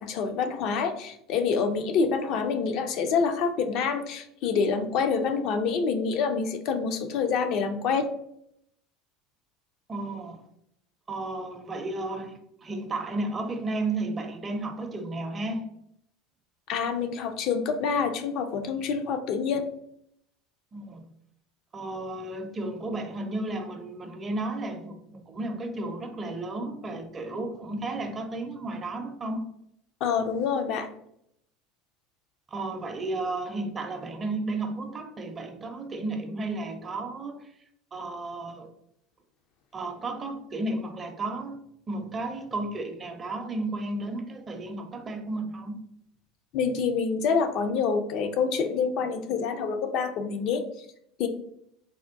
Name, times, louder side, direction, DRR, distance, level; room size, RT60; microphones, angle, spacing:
voice 1, 0.0-8.1 16.7-19.6 30.0-30.9 46.5-50.6 51.2-51.3, left 5 dB, 60° left, 0.4 m, -27 dB
voice 2, 9.9-10.4 11.1-15.7 20.7-21.1 21.7-29.5 32.5-37.5 37.9-38.7 39.7-45.8, right 2 dB, 30° right, 0.5 m, -33 dB
3.5 x 2.2 x 2.5 m
hypercardioid pair, 80°, 0 cm